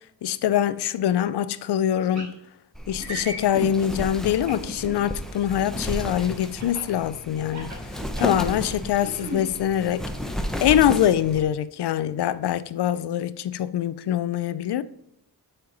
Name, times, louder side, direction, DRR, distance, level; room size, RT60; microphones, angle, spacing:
voice 1, 0.2-2.3 2.9-7.7 8.2-10.0 10.6-14.8, left 10 dB, 70° left, 0.5 m, -24 dB
sound 1, 2.1-2.3 3.0-3.7 4.5-5.1 6.6-6.9 7.4-8.5 9.0-9.4, equal, 40° right, 2.3 m, -34 dB
Wind, 2.7-11.4, equal, ahead, 0.7 m, -33 dB
7.6 x 4.4 x 5.1 m
wide cardioid pair, 120°, 41 cm